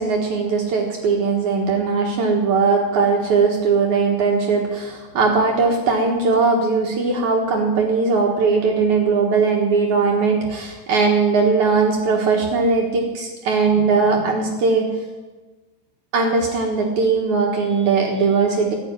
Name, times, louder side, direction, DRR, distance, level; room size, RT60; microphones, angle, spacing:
voice 1, 0.0-14.9 16.1-18.8, right 4 dB, 60° right, 1 dB, 2.6 m, -19 dB
15.5 x 8.2 x 9.7 m, 1.2 s
omnidirectional pair, 4.3 m